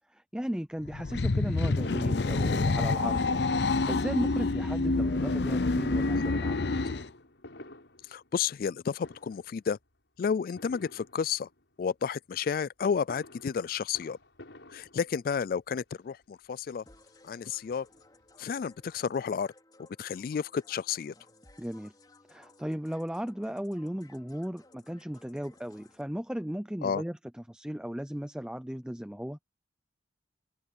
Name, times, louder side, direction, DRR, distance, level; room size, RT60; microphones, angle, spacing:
voice 1, 0.1-6.7 21.6-21.9 22.3-29.4, equal, 5° right, 0.6 m, -36 dB
sound 1, 0.8-7.1, left 3 dB, 70° left, 0.7 m, -27 dB
Fireworks, 1.9-5.0 5.8-8.7 9.0-9.6 10.6-11.7 12.8-15.5 16.2-16.3 16.6-16.7 17.0-18.3 18.6-18.7 18.9-19.0, left 1 dB, 85° left, 5.3 m, -50 dB
voice 2, 8.1-9.8 10.2-11.5 11.8-14.2 14.7-16.8 17.2-17.9 18.4-19.5 20.0-21.1 26.8-27.0, left 6 dB, 50° left, 0.3 m, -31 dB
sound 2, 16.9-26.0, left 2 dB, 20° left, 4.3 m, -59 dB
head